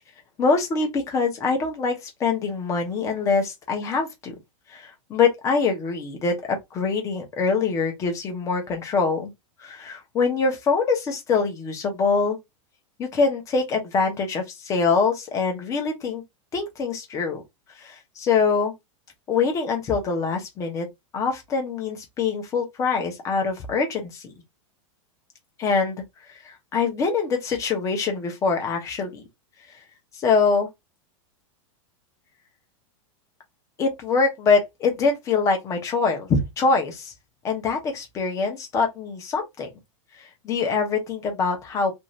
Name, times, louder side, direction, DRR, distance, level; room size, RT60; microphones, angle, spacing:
voice 1, 0.4-4.3 4.7-9.3 9.6-12.4 13.0-16.2 16.5-17.4 17.8-18.7 19.3-20.9 21.1-24.3 25.6-26.0 26.3-29.2 30.1-30.7 33.8-37.1 37.4-39.7 40.4-41.9, left 4 dB, 20° left, 0.7 m, -24 dB
2.6 x 2.4 x 3.0 m
supercardioid pair, 165°, 17 cm